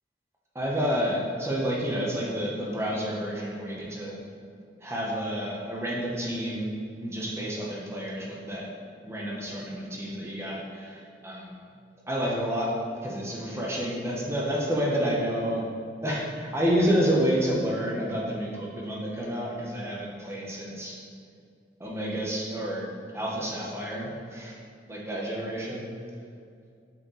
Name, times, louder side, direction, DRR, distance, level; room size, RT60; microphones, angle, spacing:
voice 1, 0.5-4.2 4.8-6.7 7.0-8.7 9.0-11.5 12.1-12.7 13.0-15.7 16.0-20.9 21.8-22.9 23.1-24.5 24.9-25.9, equal, 15° right, -4 dB, 1.0 m, -29 dB
8.1 x 4.5 x 3.9 m, 2.3 s
head